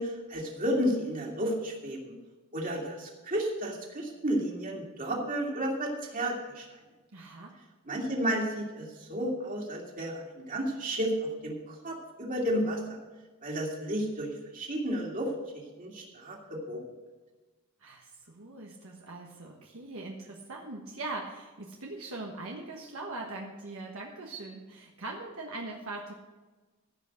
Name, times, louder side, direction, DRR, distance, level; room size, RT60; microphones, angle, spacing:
voice 1, 0.0-2.2 2.5-6.7 7.9-13.0 13.4-15.3 15.8-16.8, equal, 40° right, -1 dB, 2.7 m, -32 dB
voice 2, 7.1-7.6 17.8-26.1, right 2 dB, 65° right, -1 dB, 1.4 m, -41 dB
15.0 x 5.9 x 6.5 m, 1.3 s
head